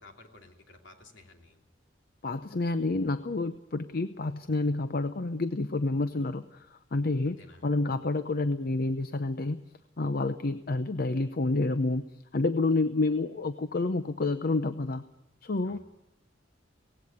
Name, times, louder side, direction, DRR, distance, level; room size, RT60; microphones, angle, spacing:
voice 1, 0.0-1.6 7.2-7.7 15.6-15.8, left 2 dB, 75° left, 3 dB, 3.0 m, -54 dB
voice 2, 2.2-9.6 10.0-12.0 12.3-15.0 15.4-15.8, left 2 dB, 55° left, 11 dB, 0.7 m, -29 dB
18.5 x 16.0 x 9.5 m, 0.90 s
head